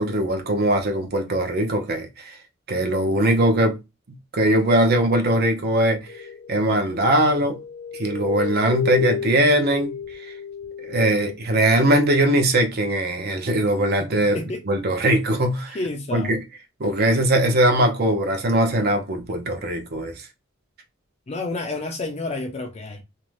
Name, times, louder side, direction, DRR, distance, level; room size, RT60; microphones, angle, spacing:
voice 1, 0.0-2.4 2.7-3.8 4.3-6.1 6.5-7.6 7.9-10.3 10.8-14.4 14.7-15.8 16.1-16.4 16.8-20.2, right 1 dB, 50° right, 0.6 m, -21 dB
sound 1, 6.1-11.3, left 7 dB, 75° left, 0.7 m, -32 dB
voice 2, 15.7-16.4 21.3-23.0, left 2 dB, 30° left, 0.4 m, -29 dB
2.6 x 2.1 x 3.1 m
head